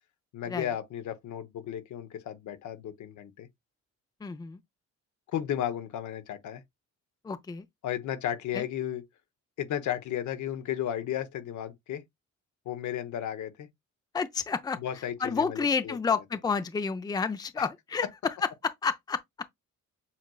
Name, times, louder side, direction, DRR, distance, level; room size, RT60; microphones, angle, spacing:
voice 1, 0.3-3.5 5.3-6.6 7.8-9.0 9.6-12.0 12.7-13.7 14.8-16.2 17.6-17.7, left 10 dB, 75° left, 1.0 m, -34 dB
voice 2, 4.2-4.6 7.2-7.7 8.5-8.6 14.1-14.8 15.2-19.2, left 5 dB, 15° left, 0.5 m, -30 dB
7.3 x 3.0 x 2.3 m
cardioid pair, 90°, 30 cm